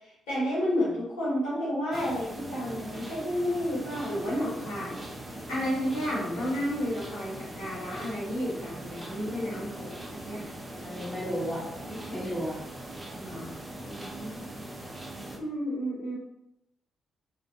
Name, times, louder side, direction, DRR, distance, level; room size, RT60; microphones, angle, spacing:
voice 1, 0.3-5.0 5.5-10.5 11.8-12.3 13.2-14.6 15.4-16.1, equal, 80° left, -8 dB, 1.0 m, -32 dB
sound 1, 1.9-15.4, right 1 dB, 20° right, 0.6 m, -41 dB
voice 2, 10.8-11.7 12.1-12.6, equal, 20° left, -10 dB, 1.2 m, -33 dB
2.4 x 2.3 x 2.7 m, 0.85 s
hypercardioid pair, 40°, 0 cm